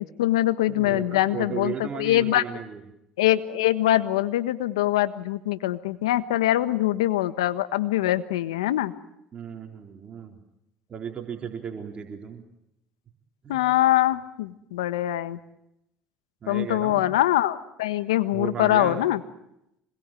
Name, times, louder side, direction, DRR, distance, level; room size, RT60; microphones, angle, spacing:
voice 1, 0.0-2.4 3.2-8.9 13.5-15.4 16.5-19.2, left 14 dB, 90° left, 12 dB, 1.4 m, -23 dB
voice 2, 0.7-2.8 9.3-10.4 10.9-12.4 13.4-13.6 16.4-17.1 18.3-19.0, right 7 dB, 40° right, 3 dB, 4.0 m, -35 dB
26.5 x 21.0 x 9.2 m, 0.82 s
hypercardioid pair, 80°, 3 cm